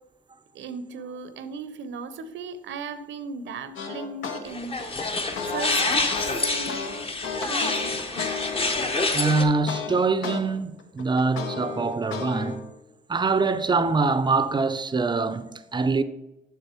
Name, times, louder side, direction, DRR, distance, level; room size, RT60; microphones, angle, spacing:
voice 1, 0.5-5.2 5.4-6.9 7.4-8.4 8.8-8.9, right 4 dB, 70° right, 0.7 m, -38 dB
sound 1, 3.8-4.4 4.8-10.4 10.8-12.6, left 5 dB, 80° left, 1.1 m, -33 dB
sound 2, 4.5-9.4, left 2 dB, 30° left, 0.9 m, -27 dB
voice 2, 9.1-12.7 13.1-16.0, right 4 dB, 20° right, 0.5 m, -24 dB
6.9 x 6.2 x 4.4 m
cardioid pair, 90°, 20 cm